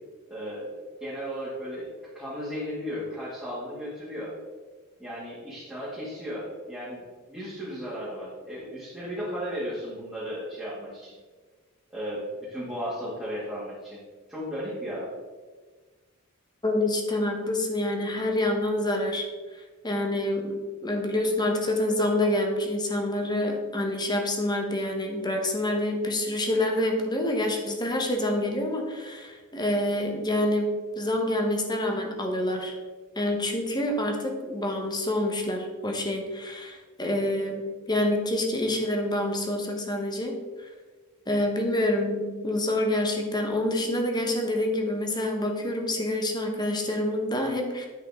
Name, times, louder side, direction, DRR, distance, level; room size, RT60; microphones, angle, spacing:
voice 1, 0.3-0.7 1.0-1.9 2.1-4.3 5.0-11.1 11.9-14.0 14.3-15.1, equal, 5° right, -11 dB, 2.2 m, -35 dB
voice 2, 16.6-19.3 19.8-32.7 33.2-40.4 41.3-47.9, left 1 dB, 20° left, 3 dB, 1.1 m, -27 dB
10.0 x 5.5 x 3.7 m, 1.4 s
head